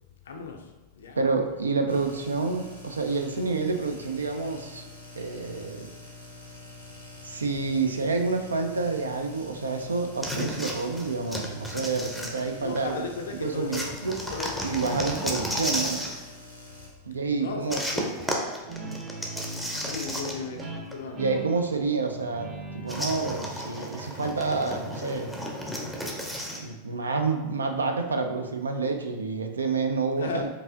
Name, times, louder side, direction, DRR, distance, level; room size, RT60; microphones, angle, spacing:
voice 1, 0.2-1.4 12.6-13.8 14.3-14.7 17.0-18.1 19.8-21.2 30.2-30.5, left 4 dB, 65° left, 3 dB, 0.5 m, -36 dB
voice 2, 1.2-4.8 5.1-5.9 7.2-13.1 13.4-14.2 14.6-16.0 17.1-17.8 18.8-19.0 21.2-25.3 26.5-30.5, right 4 dB, 75° right, 5 dB, 0.4 m, -28 dB
sound 1, 1.9-16.9, left 2 dB, 90° right, 0.8 m, -46 dB
sound 2, 10.2-12.9 13.7-16.2 17.7-20.6 20.9-21.0 22.9-26.6, equal, ahead, 0.6 m, -33 dB
Guitar, 18.6-25.8, right 3 dB, 35° right, 0.8 m, -41 dB
4.6 x 2.6 x 2.6 m, 1.1 s
figure-of-eight pair, 90°, 0 cm